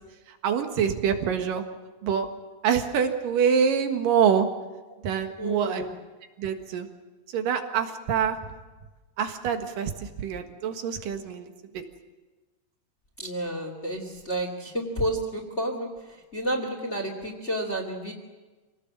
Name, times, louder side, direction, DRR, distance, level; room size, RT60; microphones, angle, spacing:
voice 1, 0.4-1.6 2.0-2.3 2.6-4.5 5.0-5.8 6.4-6.9 7.3-8.4 9.2-11.8, right 7 dB, 90° right, 6 dB, 3.3 m, -25 dB
voice 2, 5.4-5.9 13.2-18.1, right 1 dB, 20° left, 2 dB, 2.6 m, -31 dB
27.0 x 18.5 x 7.5 m, 1.2 s
omnidirectional pair, 3.8 m